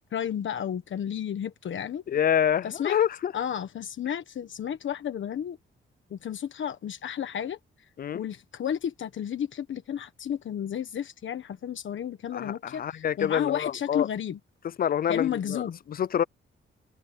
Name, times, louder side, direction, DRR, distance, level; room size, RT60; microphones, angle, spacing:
voice 1, 0.1-2.0 2.6-3.0 3.3-5.6 6.1-7.6 8.1-14.4 15.1-15.8, left 9 dB, 65° left, 1.3 m, -32 dB
voice 2, 2.1-3.3 8.0-8.2 12.3-14.1 14.8-15.6 15.9-16.2, left 9 dB, 45° left, 0.4 m, -26 dB
cardioid pair, 105°, 21 cm